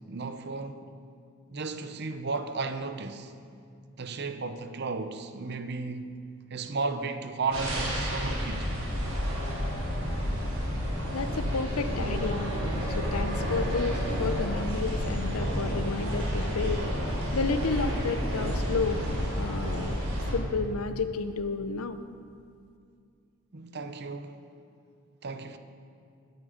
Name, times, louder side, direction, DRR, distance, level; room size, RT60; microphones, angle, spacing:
voice 1, 0.1-0.9 1.5-3.3 4.0-6.2 6.5-8.7 23.5-24.4 25.2-25.6, right 3 dB, 50° right, 0.7 m, -34 dB
sound 1, 7.5-20.4, equal, 70° right, 4.2 m, -30 dB
voice 2, 11.1-12.6 12.9-19.0 19.4-20.0 20.3-22.0, left 4 dB, 80° left, 0.8 m, -31 dB
20.5 x 8.6 x 5.1 m
head